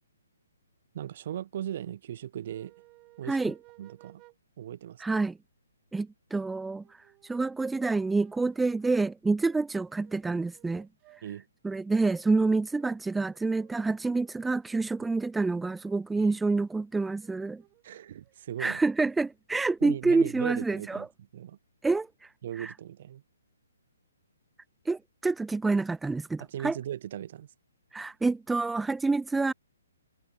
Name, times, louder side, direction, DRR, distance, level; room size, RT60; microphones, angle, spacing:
voice 1, 0.9-2.7 3.2-3.5 3.8-4.2 4.6-5.3 11.2-11.5 16.2-16.4 17.8-18.8 19.8-21.1 21.3-21.6 22.4-23.2 26.4-27.5, right 11 dB, 50° right, 0.8 m, -38 dB
sound 1, 2.5-4.4 6.7-9.2 9.4-11.2 12.1-13.0 13.3-16.0 16.9-18.4, right 23 dB, 25° right, 3.1 m, -59 dB
voice 2, 5.0-5.4 5.9-6.8 7.2-10.9 11.6-17.6 18.6-21.1 21.8-22.3 22.6-22.7 24.9-26.8 27.9-29.5, right 3 dB, 5° right, 0.3 m, -27 dB
hypercardioid pair, 145°, 0 cm